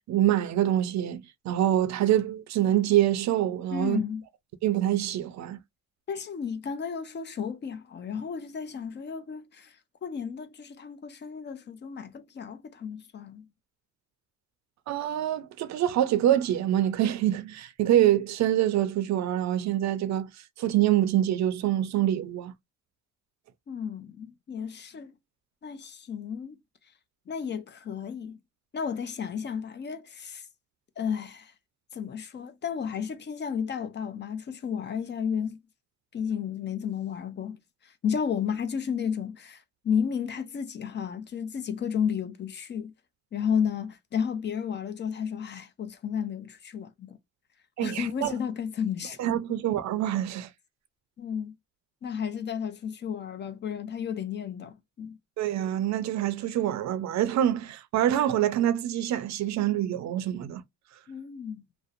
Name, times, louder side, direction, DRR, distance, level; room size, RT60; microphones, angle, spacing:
voice 1, 0.0-4.0 4.6-5.6 14.9-20.3 20.6-22.5 47.8-48.3 49.2-50.5 55.4-60.6, right 12 dB, 65° right, 0.5 m, -25 dB
voice 2, 3.7-4.2 6.1-9.8 10.0-13.5 23.7-25.1 25.6-26.6 27.3-28.4 28.7-30.4 31.0-31.5 31.9-35.6 36.1-37.6 37.8-42.9 43.3-47.2 47.8-49.2 51.2-51.5 52.0-55.2 61.1-61.6, left 7 dB, 35° left, 0.4 m, -32 dB
2.6 x 2.0 x 2.4 m
cardioid pair, 90°, 30 cm